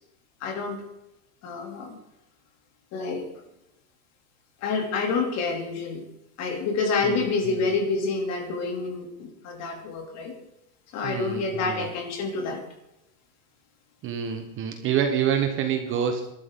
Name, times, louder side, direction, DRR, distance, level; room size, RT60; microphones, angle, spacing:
voice 1, 0.4-0.8 1.4-2.0 2.9-3.3 4.6-6.1 6.4-10.3 10.9-12.6, left 4 dB, 35° left, 3 dB, 3.3 m, -28 dB
voice 2, 7.0-7.7 11.0-11.8 14.0-16.3, right 8 dB, 25° right, 6 dB, 1.4 m, -27 dB
22.5 x 12.5 x 4.0 m, 0.90 s
supercardioid pair, 155°, 46 cm